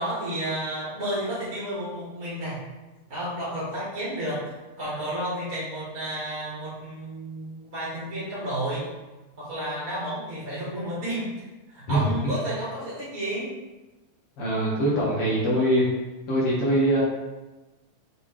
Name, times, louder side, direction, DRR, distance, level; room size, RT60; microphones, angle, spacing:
voice 1, 0.0-2.6 3.1-8.8 9.4-13.5, right 1 dB, 30° right, -9 dB, 2.0 m, -31 dB
voice 2, 11.9-12.3 14.4-15.8 16.3-17.0, right 1 dB, 55° left, -7 dB, 1.9 m, -23 dB
6.8 x 3.9 x 3.6 m, 1.1 s
omnidirectional pair, 3.6 m